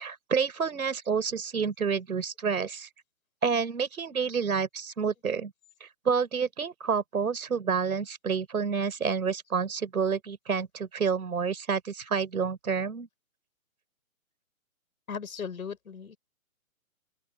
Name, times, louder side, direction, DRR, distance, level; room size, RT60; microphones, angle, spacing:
voice 1, 0.0-2.9 3.4-5.5 5.8-13.1, right 6 dB, 85° right, 5.9 m, -29 dB
voice 2, 15.1-16.2, left 6 dB, 80° left, 7.5 m, -37 dB
open air
hypercardioid pair, 160°, 42 cm